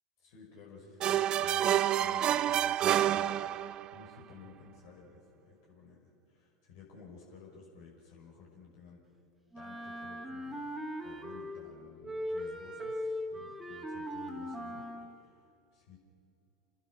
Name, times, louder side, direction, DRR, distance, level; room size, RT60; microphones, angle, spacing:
voice 1, 0.2-9.0 9.5-10.7 11.0-14.8 15.1-16.0, left 5 dB, 55° left, -1 dB, 5.9 m, -54 dB
sound 1, 1.0-4.0, right 11 dB, 35° right, 0.5 m, -28 dB
Wind instrument woodwind instrument, 9.5-11.7 12.0-15.1, equal, 5° right, 3.5 m, -39 dB
29.5 x 20.5 x 6.4 m, 2.5 s
figure-of-eight pair, 80°, 3 cm